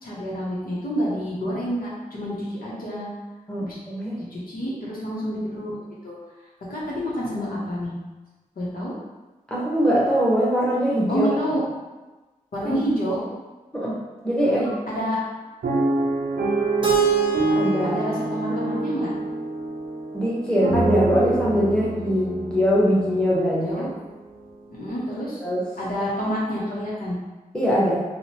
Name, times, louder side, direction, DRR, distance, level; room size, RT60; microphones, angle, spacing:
voice 1, 0.0-3.1 3.6-3.8 4.2-5.8 6.0-6.2 6.7-7.9 8.6-8.9 11.1-11.6 12.5-13.2 14.4-15.2 17.8-19.1 23.6-23.9 24.7-25.4 25.8-27.2, equal, 85° left, -6 dB, 0.7 m, -28 dB
voice 2, 3.5-4.2 9.5-11.3 13.7-14.0 14.2-14.6 17.5-18.0 20.1-23.9 25.4-25.6 27.5-28.0, equal, 5° left, -7 dB, 1.0 m, -22 dB
sound 1, 15.6-23.7 24.3-24.4 24.7-25.0, right 2 dB, 85° right, 0.5 m, -26 dB
Keyboard (musical), 16.8-19.8, right 9 dB, 35° right, 0.5 m, -24 dB
2.8 x 2.0 x 2.8 m, 1.2 s
cardioid pair, 45°, 15 cm